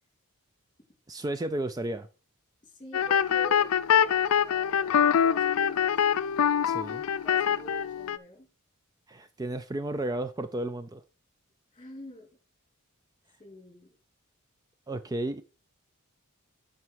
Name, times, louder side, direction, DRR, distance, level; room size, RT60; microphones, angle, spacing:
voice 1, 1.1-2.1 6.6-7.0 9.1-11.0 14.9-15.4, right 1 dB, 15° right, 0.4 m, -33 dB
voice 2, 2.6-5.9 7.2-8.5 11.7-12.3 13.4-13.9, equal, 20° left, 2.8 m, -47 dB
sound 1, 2.9-8.2, left 8 dB, 70° left, 0.4 m, -24 dB
9.5 x 5.5 x 4.7 m
head